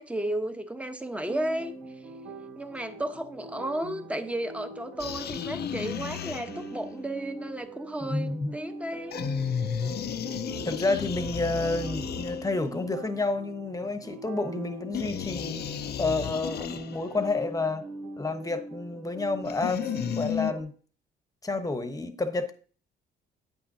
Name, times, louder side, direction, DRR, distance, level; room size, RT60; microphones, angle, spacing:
voice 1, 0.0-1.8 2.6-9.2, right 1 dB, 5° right, 1.0 m, -33 dB
sound 1, 1.3-20.6, right 3 dB, 85° right, 2.3 m, -42 dB
sound 2, 5.0-6.9 9.1-12.8 14.9-17.2 19.5-20.5, left 9 dB, 55° left, 0.5 m, -33 dB
voice 2, 8.1-8.5 10.6-15.7 16.0-17.9 18.2-20.7 21.4-22.5, left 3 dB, 15° left, 1.1 m, -30 dB
9.5 x 8.6 x 2.7 m
cardioid pair, 90°, 20 cm